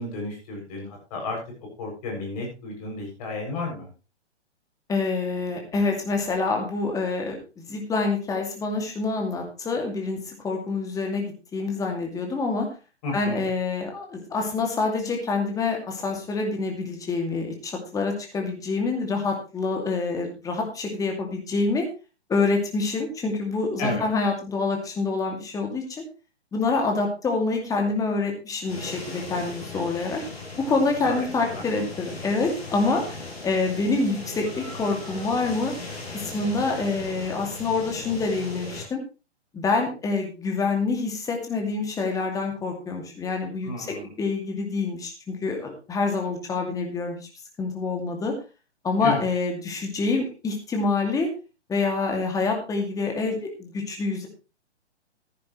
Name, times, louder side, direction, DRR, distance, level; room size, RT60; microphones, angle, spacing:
voice 1, 0.0-1.4 1.8-3.9 13.0-13.4 23.8-24.0 31.0-31.7 43.6-44.1 49.0-49.3, left 2 dB, 35° left, 0 dB, 7.0 m, -32 dB
voice 2, 4.9-12.7 13.1-21.9 22.3-26.0 26.5-30.2 30.6-35.7 36.1-39.0 39.5-47.2 47.6-48.3 48.8-51.3 51.7-54.3, left 3 dB, 10° left, 2 dB, 2.5 m, -26 dB
sound 1, 28.7-38.9, left 2 dB, 60° left, 6.5 m, -38 dB
15.0 x 10.5 x 3.2 m, 0.31 s
figure-of-eight pair, 125°, 34 cm